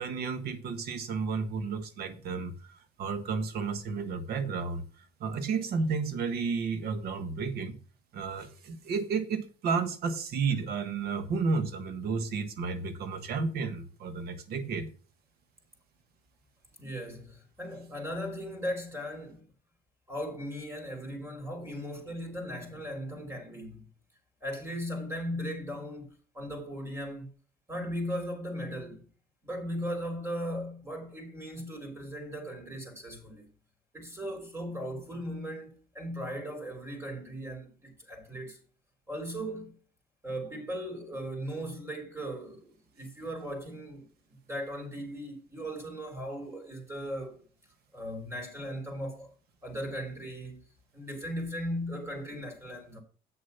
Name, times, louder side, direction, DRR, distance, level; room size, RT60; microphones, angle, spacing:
voice 1, 0.0-7.8 8.1-14.9, right 5 dB, 70° right, 1.5 m, -32 dB
voice 2, 16.8-19.4 20.1-23.9 24.4-27.3 27.7-29.0 29.4-33.5 33.9-38.6 39.1-39.8 40.2-47.4 47.9-49.3 49.6-50.6 50.9-53.0, equal, 15° right, 3.7 m, -38 dB
7.9 x 6.7 x 5.6 m
cardioid pair, 110°, 17 cm